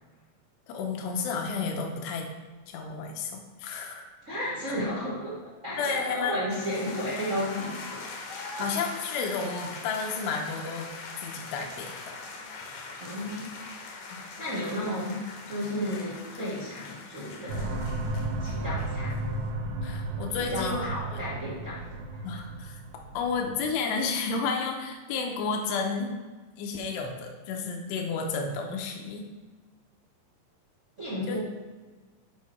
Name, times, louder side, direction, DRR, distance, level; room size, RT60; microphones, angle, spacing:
voice 1, 0.7-2.3 2.7-4.1 4.7-4.8 5.8-6.3 8.6-10.9 11.2-12.2 12.6-12.8 13.3-13.5 14.1-14.2 19.8-21.2 22.2-22.8 23.1-26.1 26.6-29.3 31.3-31.4, left 4 dB, 90° left, 2 dB, 2.9 m, -32 dB
voice 2, 4.2-8.0 8.6-8.7 13.0-13.5 14.4-17.8 18.4-19.2 20.4-22.2 31.0-31.4, equal, 70° right, -7 dB, 0.7 m, -33 dB
sound 1, 6.5-19.2, left 3 dB, 70° left, 1.8 m, -42 dB
sound 2, 17.5-23.8, right 2 dB, 90° right, 3.1 m, -34 dB
9.4 x 5.7 x 4.3 m, 1.3 s
omnidirectional pair, 4.9 m